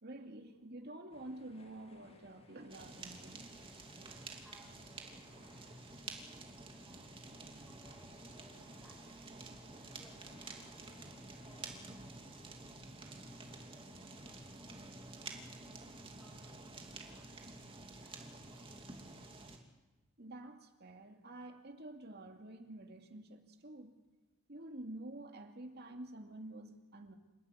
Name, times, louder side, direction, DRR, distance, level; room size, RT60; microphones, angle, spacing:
voice 1, 0.0-3.5 20.2-24.0 24.5-27.2, right 1 dB, 50° right, 5 dB, 2.5 m, -49 dB
sound 1, 1.1-14.5, left 1 dB, 30° left, 2.4 m, -64 dB
Fire, 2.7-19.6, right 3 dB, 25° right, 2.7 m, -50 dB
voice 2, 3.9-5.6 6.1-9.5 9.9-10.3 10.7-13.2 13.7-15.6 16.1-19.0, equal, ahead, -3 dB, 7.8 m, -66 dB
28.0 x 15.0 x 9.7 m, 1.1 s
head